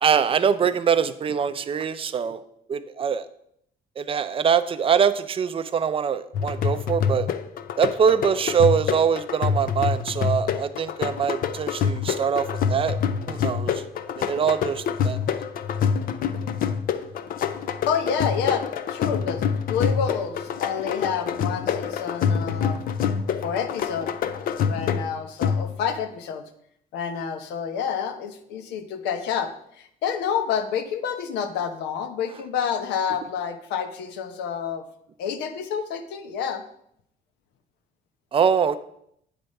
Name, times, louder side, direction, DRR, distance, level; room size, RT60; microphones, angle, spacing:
voice 1, 0.0-2.4 2.7-3.3 4.0-7.3 7.8-13.0 13.3-13.8 14.2-15.2 38.3-38.8, right 7 dB, 35° right, 12 dB, 0.5 m, -23 dB
sound 1, 6.3-26.0, left 7 dB, 55° left, 0.5 m, -26 dB
voice 2, 17.9-19.4 19.7-22.8 23.4-24.1 24.6-26.4 26.9-34.8 35.2-36.6, left 7 dB, 85° left, 9 dB, 0.8 m, -28 dB
9.0 x 3.4 x 5.3 m, 0.72 s
cardioid pair, 110°, 17 cm